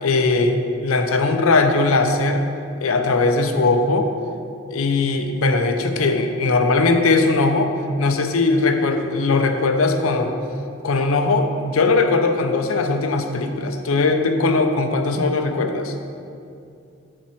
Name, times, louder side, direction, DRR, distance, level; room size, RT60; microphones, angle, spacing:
voice 1, 0.0-2.4 2.8-4.1 4.7-7.7 8.0-10.3 10.8-15.9, left 3 dB, 85° left, 6 dB, 0.6 m, -19 dB
12.5 x 4.3 x 3.1 m, 2.5 s
head